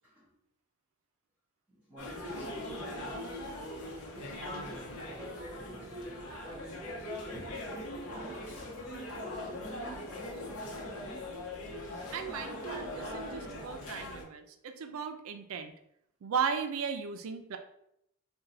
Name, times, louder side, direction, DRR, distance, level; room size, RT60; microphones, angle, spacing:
voice 1, 1.7-3.2 4.1-8.8 9.2-10.7, equal, 5° right, 0.8 m, -48 dB
sound 1, 2.0-14.2, left 1 dB, 90° left, 0.8 m, -41 dB
voice 2, 12.1-15.7 16.2-17.6, right 6 dB, 75° right, 0.4 m, -36 dB
2.6 x 2.2 x 4.0 m
head